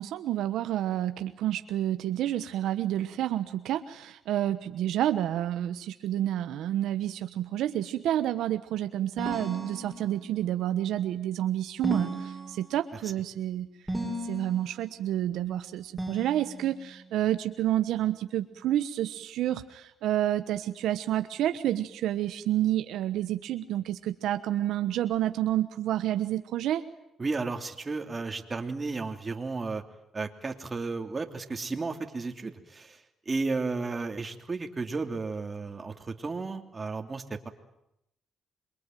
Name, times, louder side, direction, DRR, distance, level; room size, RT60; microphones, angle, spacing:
voice 1, 0.0-13.7 14.2-26.8, right 12 dB, 85° right, 10 dB, 1.1 m, -29 dB
sound 1, 9.2-10.4 11.8-13.0 13.9-14.8 16.0-16.9, right 1 dB, 5° right, 7.1 m, -35 dB
voice 2, 27.2-29.8 30.1-33.0 33.3-37.5, right 3 dB, 30° right, 5 dB, 2.9 m, -33 dB
27.0 x 23.5 x 9.2 m, 0.82 s
cardioid pair, 90°, 0 cm